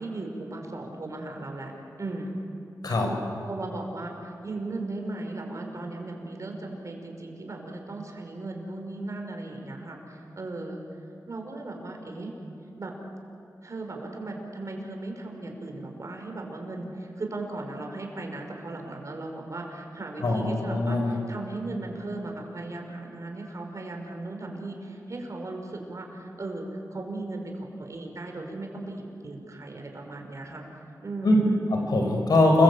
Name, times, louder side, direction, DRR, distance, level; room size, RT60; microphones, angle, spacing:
voice 1, 0.0-1.7 2.0-2.3 3.5-10.8 11.3-12.3 12.8-12.9 13.6-30.6 31.0-31.6, right 2 dB, 50° right, 2 dB, 5.5 m, -37 dB
voice 2, 20.2-21.1 31.2-31.4 31.7-32.6, left 2 dB, 70° left, 2 dB, 6.1 m, -22 dB
29.0 x 22.0 x 8.8 m, 2.6 s
wide cardioid pair, 80°, 7 cm